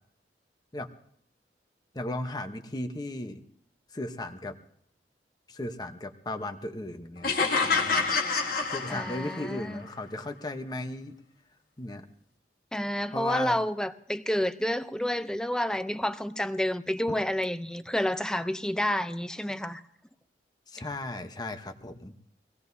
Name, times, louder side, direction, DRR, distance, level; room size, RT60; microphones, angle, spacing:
voice 1, 1.9-3.4 3.9-4.6 5.5-7.4 7.6-8.2 8.7-11.2 11.8-12.0 13.1-13.6 20.7-22.1, left 2 dB, 25° left, 0.9 m, -36 dB
sound 1, 7.2-9.6, left 4 dB, 55° left, 1.7 m, -27 dB
voice 2, 8.9-9.9 12.7-19.8, left 1 dB, 5° left, 0.5 m, -29 dB
24.5 x 17.5 x 2.7 m
head